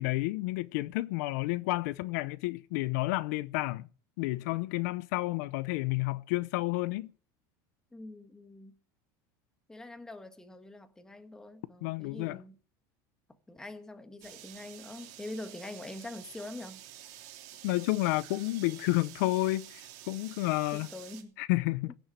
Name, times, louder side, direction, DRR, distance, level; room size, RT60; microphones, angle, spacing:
voice 1, 0.0-3.9 4.2-7.1 11.8-12.4 17.6-20.9 21.4-21.9, left 20 dB, 75° left, 0.7 m, -30 dB
voice 2, 7.9-8.8 9.7-12.6 13.5-16.8 20.7-21.3 21.9-22.0, left 2 dB, 5° left, 1.4 m, -44 dB
sound 1, 14.2-21.2, right 12 dB, 65° right, 3.3 m, -49 dB
16.5 x 7.2 x 9.0 m
cardioid pair, 160°, 9 cm